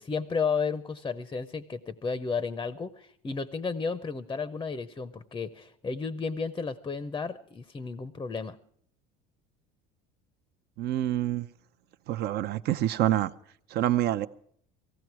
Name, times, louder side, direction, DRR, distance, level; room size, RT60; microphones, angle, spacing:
voice 1, 0.0-8.6, left 5 dB, 20° left, 0.6 m, -33 dB
voice 2, 10.8-11.5 12.1-13.3 13.7-14.3, right 13 dB, 55° right, 0.7 m, -26 dB
18.0 x 15.5 x 4.6 m
supercardioid pair, 120°, 20 cm